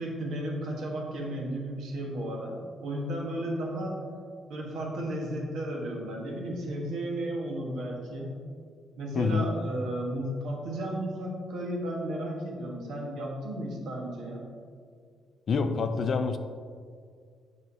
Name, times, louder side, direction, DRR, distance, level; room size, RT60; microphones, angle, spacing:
voice 1, 0.0-4.1 4.5-8.3 9.0-14.5, right 1 dB, 80° right, -2 dB, 1.3 m, -34 dB
voice 2, 9.1-9.5 15.5-16.4, left 4 dB, 55° left, 9 dB, 0.4 m, -26 dB
7.5 x 5.2 x 2.7 m, 2.1 s
cardioid pair, 90°, 0 cm